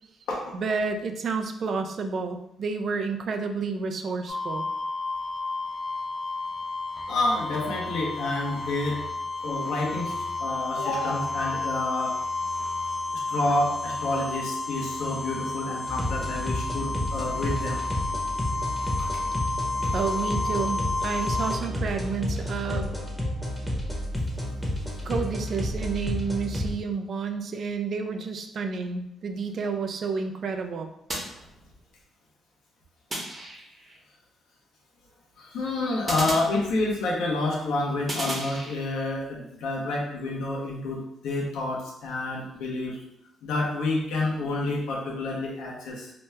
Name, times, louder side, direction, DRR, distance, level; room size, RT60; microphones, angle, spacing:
voice 1, 0.5-4.7 19.9-22.9 25.0-30.9, right 4 dB, 55° right, 6 dB, 0.3 m, -30 dB
sound 1, 4.3-21.6, left 3 dB, 45° left, 0.6 m, -31 dB
voice 2, 7.1-9.0 9.4-12.2 13.1-17.8 35.4-43.0 43.4-46.1, left 2 dB, 85° left, -2 dB, 0.8 m, -29 dB
sound 2, 15.9-26.7, left 1 dB, 5° left, 0.8 m, -31 dB
sound 3, 31.1-32.0 33.1-34.0 36.1-37.2 38.1-39.1, right 1 dB, 30° right, 0.9 m, -35 dB
2.8 x 2.2 x 3.3 m, 0.80 s
cardioid pair, 85°, 0 cm